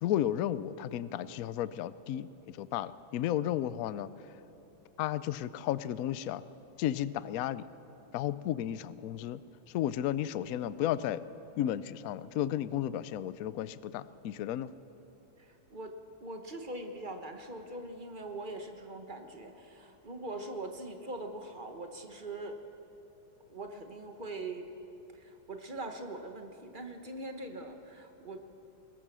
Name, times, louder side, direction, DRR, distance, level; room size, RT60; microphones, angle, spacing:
voice 1, 0.0-4.1 5.0-6.4 6.8-7.6 8.1-9.4 9.7-11.2 11.6-14.7, left 11 dB, 85° left, 16 dB, 0.7 m, -33 dB
voice 2, 15.4-15.9 16.2-22.5 23.5-24.7 25.1-28.4, right 2 dB, 30° right, 5 dB, 1.3 m, -42 dB
21.5 x 21.0 x 6.2 m, 3.0 s
omnidirectional pair, 2.2 m